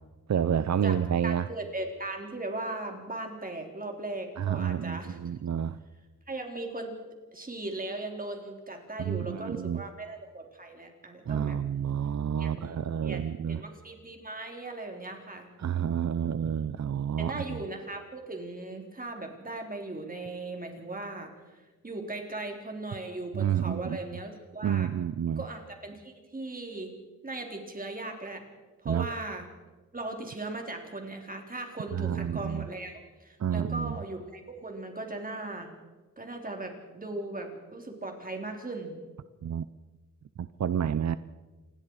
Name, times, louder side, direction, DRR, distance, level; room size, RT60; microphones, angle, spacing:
voice 1, 0.3-1.5 4.4-5.8 9.0-9.8 11.3-13.6 15.6-17.6 23.3-24.0 24.6-25.4 28.9-29.1 31.9-32.7 33.4-34.0 39.4-39.6 40.4-41.2, right 9 dB, 60° right, 14 dB, 0.7 m, -29 dB
voice 2, 1.2-5.2 6.3-6.9 7.3-11.6 12.4-15.5 17.2-24.9 25.4-26.9 27.2-28.4 28.8-29.5 29.9-35.7 36.2-39.0, right 2 dB, 25° right, 2 dB, 4.1 m, -38 dB
27.5 x 21.0 x 4.9 m, 1.2 s
wide cardioid pair, 125°, 32 cm